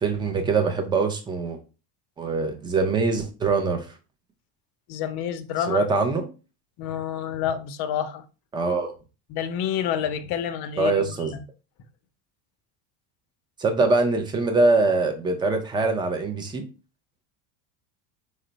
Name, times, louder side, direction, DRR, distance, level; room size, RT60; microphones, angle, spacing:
voice 1, 0.0-1.6 2.2-3.9 5.7-6.3 8.5-8.9 10.8-11.4 13.6-16.6, right 3 dB, 10° right, 0.3 m, -23 dB
voice 2, 4.9-5.9 6.8-8.2 9.3-11.4, left 9 dB, 50° left, 0.6 m, -28 dB
4.3 x 2.0 x 3.8 m
supercardioid pair, 125°, 50 cm